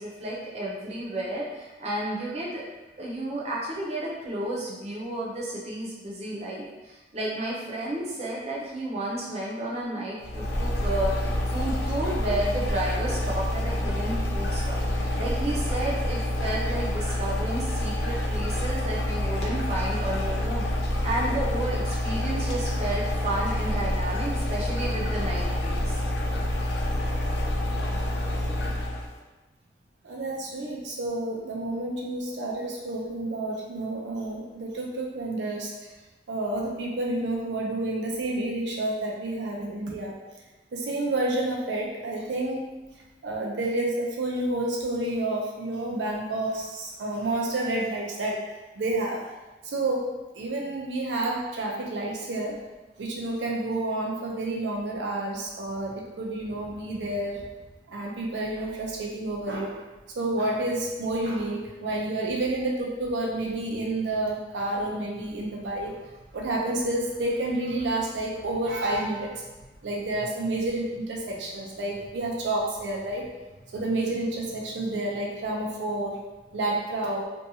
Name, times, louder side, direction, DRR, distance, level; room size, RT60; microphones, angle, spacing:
voice 1, 0.0-2.6 3.0-25.9, right 1 dB, 35° right, -4 dB, 0.6 m, -32 dB
sound 1, 10.2-29.1, left 1 dB, 65° left, 0.4 m, -27 dB
voice 2, 30.0-35.9 36.3-40.1 40.7-42.7 43.2-48.5 48.8-49.2 49.6-52.6 53.0-57.4 57.9-59.8 60.2-69.4 69.8-73.3 73.7-76.2 76.5-77.3, right 2 dB, 85° right, -2 dB, 0.4 m, -29 dB
2.6 x 2.3 x 2.7 m, 1.1 s
head